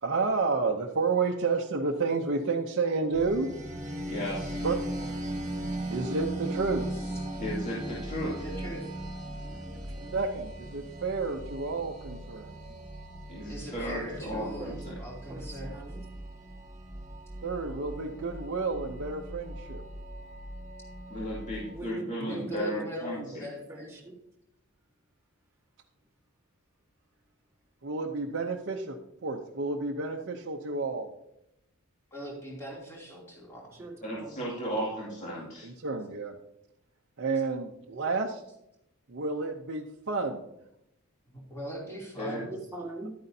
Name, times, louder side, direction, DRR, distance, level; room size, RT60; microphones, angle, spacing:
voice 1, 0.0-3.5 4.6-4.8 5.9-6.9 10.1-12.6 17.4-19.8 27.8-29.0 29.2-31.1 35.6-36.3 37.2-38.4 39.1-40.4, right 4 dB, 55° right, 0 dB, 0.7 m, -30 dB
sound 1, 3.1-21.8, right 1 dB, 35° right, 1.6 m, -38 dB
voice 2, 4.1-4.7 7.4-8.4 13.3-14.9 21.1-23.5 34.0-35.7 42.2-42.4, equal, 35° left, -6 dB, 2.3 m, -35 dB
voice 3, 8.4-8.8 13.5-15.8 22.2-24.1 32.1-33.8 41.3-42.5, equal, 10° left, -4 dB, 2.9 m, -40 dB
voice 4, 9.4-10.1 14.3-15.0 15.3-16.0 21.5-23.3 23.7-24.1 33.7-34.4 42.5-43.1, right 2 dB, 15° right, -3 dB, 1.6 m, -42 dB
11.5 x 9.4 x 2.7 m, 0.83 s
head